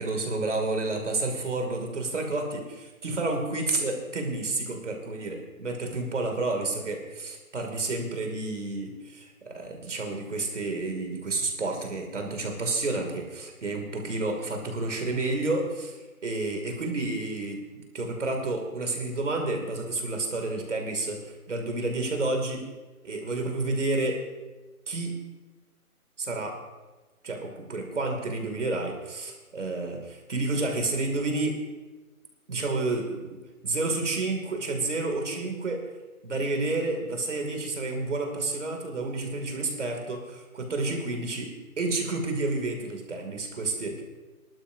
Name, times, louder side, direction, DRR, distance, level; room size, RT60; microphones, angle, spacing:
voice 1, 0.0-16.0 16.2-22.6 23.0-24.2 24.9-25.1 26.2-26.6 27.2-31.6 32.5-33.4 33.6-35.8 36.2-44.0, right 2 dB, 50° right, 3 dB, 2.6 m, -30 dB
22.5 x 12.0 x 2.7 m, 1.2 s
hypercardioid pair, 180°, 44 cm